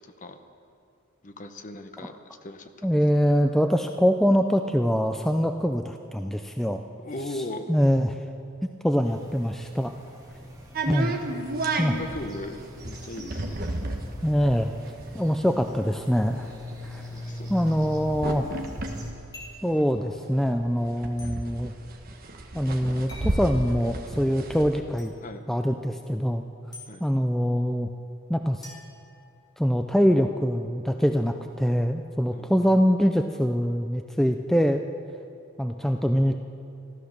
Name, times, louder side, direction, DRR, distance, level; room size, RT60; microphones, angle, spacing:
voice 1, 1.2-2.2 2.4-2.9 7.0-7.7 11.2-11.5 11.8-12.6 12.9-13.6 17.1-17.5 25.2-25.4 26.9-27.0 32.3-32.5, left 1 dB, 35° left, 7 dB, 0.9 m, -37 dB
voice 2, 2.8-6.8 7.3-7.4 7.7-8.2 8.8-9.9 10.9-11.2 11.8-12.0 14.2-14.7 15.1-16.5 16.8-17.0 17.5-18.6 19.6-21.7 22.5-25.1 25.5-26.4 27.0-27.9 28.3-28.7 29.6-34.8 35.6-36.4, equal, ahead, 5 dB, 0.3 m, -24 dB
sound 1, 9.0-19.1, equal, 20° right, 2.1 m, -41 dB
sound 2, 10.7-20.2 20.6-20.7 20.8-24.8, right 2 dB, 45° right, 1.1 m, -33 dB
sound 3, 19.3-19.7 21.2-21.3 23.1-23.4 25.0-25.1 26.7-26.9 28.6-29.7, left 2 dB, 20° left, 2.9 m, -45 dB
14.5 x 12.0 x 6.5 m, 2.5 s
head